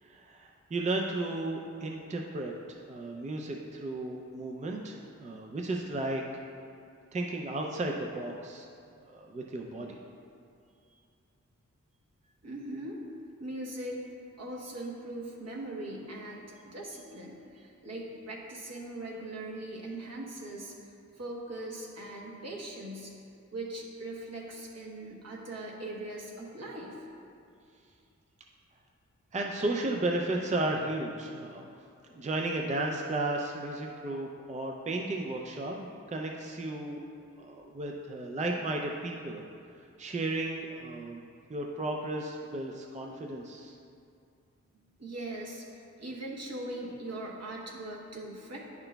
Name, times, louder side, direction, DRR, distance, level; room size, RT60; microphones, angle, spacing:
voice 1, 0.0-6.2 7.1-8.7 9.1-10.0 29.3-31.6 32.1-37.0 37.4-39.4 39.8-41.2 41.5-43.8, right 2 dB, 25° right, 1 dB, 0.4 m, -34 dB
voice 2, 12.4-13.0 13.4-14.0 14.4-20.7 21.1-23.1 23.5-27.1 45.0-48.6, right 1 dB, 60° right, -2 dB, 1.1 m, -40 dB
9.8 x 5.9 x 2.2 m, 2.4 s
wide cardioid pair, 110°, 29 cm